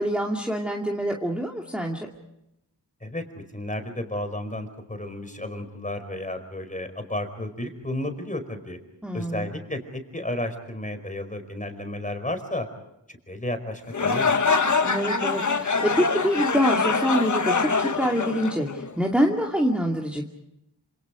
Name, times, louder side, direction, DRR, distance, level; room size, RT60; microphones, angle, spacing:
voice 1, 0.0-2.1 9.0-9.5 14.8-20.2, equal, 5° right, 0 dB, 2.5 m, -25 dB
voice 2, 3.0-8.8 9.1-12.7 13.1-14.3, left 1 dB, 15° left, 7 dB, 4.9 m, -32 dB
sound 1, 13.9-19.1, left 4 dB, 40° left, 1.5 m, -24 dB
27.5 x 27.0 x 5.1 m, 0.86 s
wide cardioid pair, 75°, 43 cm